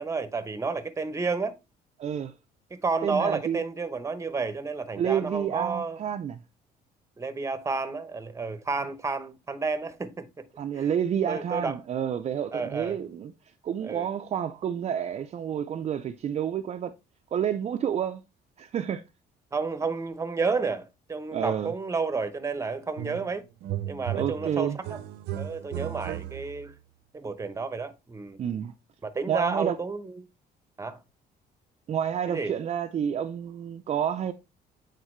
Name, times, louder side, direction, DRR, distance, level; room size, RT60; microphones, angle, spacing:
voice 1, 0.0-1.5 2.7-6.0 7.2-10.5 10.7-10.9 11.3-11.8 12.5-13.0 13.8-14.1 19.5-23.4 23.9-25.0 25.3-26.7 27.1-28.4 29.0-30.3 30.8-31.0 32.3-32.5, right 4 dB, 15° right, 0.8 m, -31 dB
voice 2, 2.0-2.3 3.0-3.6 5.0-6.4 10.6-13.3 13.6-16.9 17.3-18.2 18.6-19.0 21.3-21.7 24.2-24.8 28.4-28.7 29.3-29.8 31.9-34.3, right 9 dB, 40° right, 0.5 m, -29 dB
sound 1, 23.0-23.3 23.6-26.7, right 12 dB, 85° right, 0.7 m, -35 dB
8.4 x 3.9 x 3.1 m
cardioid pair, 110°, 17 cm